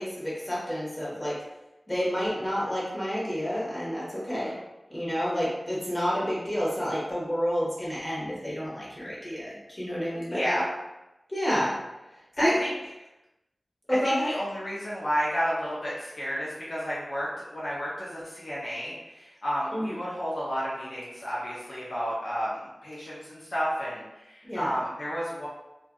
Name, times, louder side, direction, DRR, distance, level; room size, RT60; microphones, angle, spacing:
voice 1, 0.0-1.4 1.9-4.5 4.9-10.6 11.3-11.7 12.4-12.5 13.9-14.3 19.7-20.0 24.5-24.7, equal, 20° left, -7 dB, 1.1 m, -29 dB
voice 2, 10.3-10.6 12.4-12.7 13.9-25.5, equal, 65° left, -8 dB, 0.7 m, -31 dB
2.5 x 2.4 x 2.3 m, 0.97 s
wide cardioid pair, 70°, 0 cm